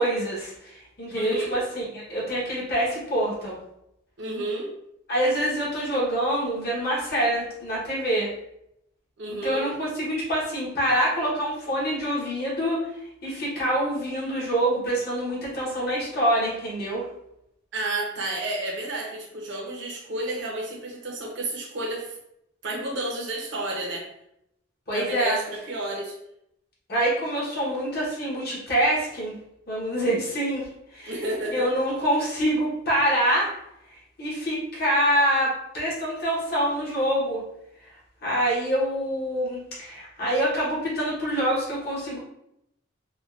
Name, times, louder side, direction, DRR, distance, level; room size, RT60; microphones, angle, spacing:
voice 1, 0.0-3.6 5.1-8.3 9.3-12.8 13.2-17.1 24.9-25.4 26.9-29.3 29.7-31.2 31.5-33.5 33.9-37.4 38.2-42.2, right 1 dB, 50° left, -6 dB, 1.0 m, -26 dB
voice 2, 1.1-1.5 4.2-4.7 9.2-9.6 17.7-22.1 22.6-24.1 24.9-26.2 31.1-31.7, right 2 dB, 60° right, -1 dB, 0.7 m, -31 dB
3.6 x 2.3 x 2.4 m, 0.80 s
head